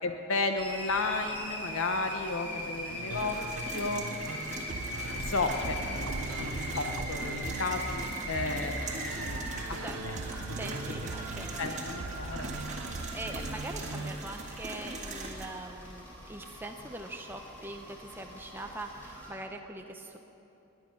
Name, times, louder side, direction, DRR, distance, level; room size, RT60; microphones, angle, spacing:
voice 1, 0.0-3.4 3.7-4.0 5.2-9.8 10.0-10.2 10.5-10.6 11.0-11.1 11.6-12.5, left 3 dB, 70° left, 6 dB, 0.8 m, -33 dB
sound 1, 0.6-19.3, equal, 10° left, 3.4 m, -42 dB
voice 2, 2.4-2.8 9.8-10.2 10.6-11.8 12.9-20.2, right 2 dB, 10° right, 3 dB, 0.6 m, -43 dB
sound 2, 2.9-14.1, right 2 dB, 85° right, 0.8 m, -39 dB
sound 3, 3.1-15.5, right 2 dB, 35° right, 1.6 m, -41 dB
20.0 x 9.7 x 5.9 m, 2.9 s
head